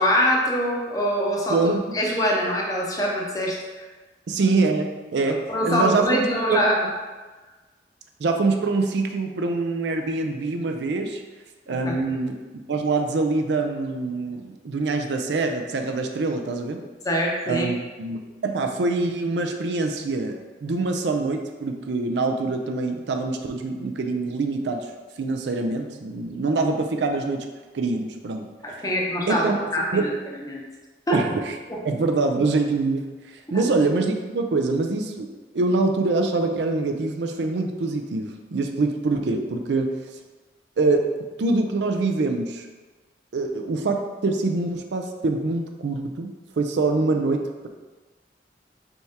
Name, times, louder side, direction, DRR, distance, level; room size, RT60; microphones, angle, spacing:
voice 1, 0.0-3.8 5.5-6.7 11.9-12.1 17.0-17.7 28.6-30.1 30.5-30.6 31.1-31.2 33.5-33.7, equal, 20° left, -2 dB, 0.6 m, -24 dB
voice 2, 1.5-1.8 4.3-5.4 5.6-6.6 8.2-11.2 11.7-12.4 12.7-16.8 17.5-20.4 20.6-24.8 25.2-27.5 27.7-28.5 29.3-29.6 29.9-30.0 31.1-31.5 31.8-33.1 33.5-40.0 40.8-41.1 41.4-42.7 43.3-47.7, right 3 dB, 70° right, 4 dB, 0.4 m, -24 dB
4.5 x 3.5 x 2.8 m, 1.3 s
head